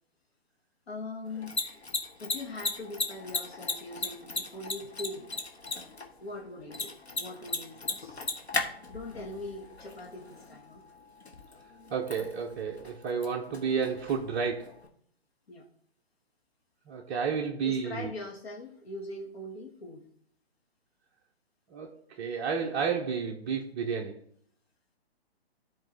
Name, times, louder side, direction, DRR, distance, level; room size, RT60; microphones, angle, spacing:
voice 1, 0.9-1.9 2.2-5.3 6.2-8.2 8.9-10.8 15.5-15.7 17.6-20.1, left 2 dB, 75° left, 1.5 m, -41 dB
Mechanisms, 1.3-14.9, left 3 dB, 90° left, 1.4 m, -38 dB
voice 2, 11.9-14.7 16.9-18.1 21.7-24.2, right 6 dB, 20° right, 0.5 m, -31 dB
13.0 x 4.6 x 3.2 m
figure-of-eight pair, 135°, 31 cm